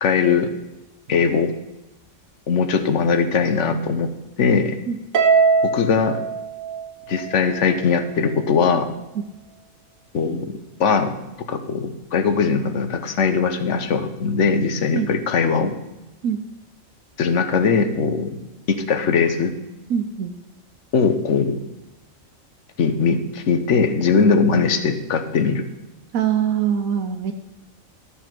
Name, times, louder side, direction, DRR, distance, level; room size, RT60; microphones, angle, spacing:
voice 1, 0.0-0.5 1.1-1.5 2.5-4.1 4.4-4.8 5.6-6.2 7.1-8.9 10.1-11.2 11.5-15.7 17.2-18.4 18.7-19.5 20.9-21.6 22.8-25.6, left 5 dB, 60° left, 9 dB, 1.2 m, -20 dB
Harp, 5.1-7.6, right 5 dB, 75° right, 1.5 m, -20 dB
voice 2, 19.9-20.3 24.2-24.5 26.1-27.3, right 8 dB, 90° right, 5 dB, 1.3 m, -23 dB
13.0 x 7.0 x 6.0 m, 0.96 s
omnidirectional pair, 1.4 m